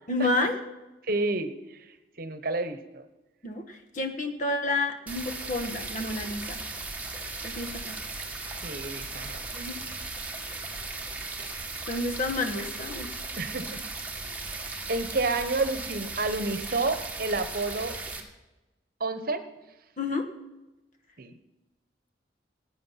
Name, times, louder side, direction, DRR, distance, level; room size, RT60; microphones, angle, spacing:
voice 1, 0.1-0.6 3.4-6.6 7.4-8.0 9.5-9.7 11.9-13.1 20.0-20.2, left 2 dB, 45° left, 6 dB, 1.4 m, -30 dB
voice 2, 1.1-1.5 2.2-3.0 8.6-9.4 13.4-13.8 14.9-17.9 19.0-19.4 21.2-21.3, right 3 dB, 55° right, 11 dB, 1.0 m, -29 dB
sound 1, 5.1-18.2, right 3 dB, 10° right, 1.6 m, -37 dB
17.5 x 8.9 x 5.8 m, 1.0 s
head